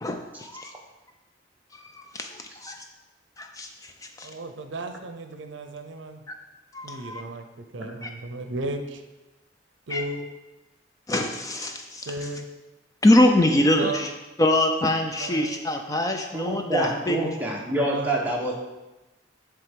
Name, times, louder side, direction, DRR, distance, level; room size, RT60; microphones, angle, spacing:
voice 1, 0.0-0.7 2.1-2.8 3.4-3.9 4.2-4.3 6.7-7.2 8.0-8.1 9.9-10.1 11.1-12.1 13.0-14.1 14.4-17.2, left 1 dB, 20° left, 4 dB, 0.3 m, -23 dB
voice 2, 4.2-6.2 6.8-9.0 9.9-10.3 12.1-12.4 13.8-14.1 15.2-15.7 16.7-17.0 17.9-18.2, right 2 dB, 75° right, 7 dB, 0.6 m, -35 dB
voice 3, 16.3-18.5, right 1 dB, 10° right, -3 dB, 1.0 m, -27 dB
7.5 x 3.4 x 5.1 m, 1.1 s
head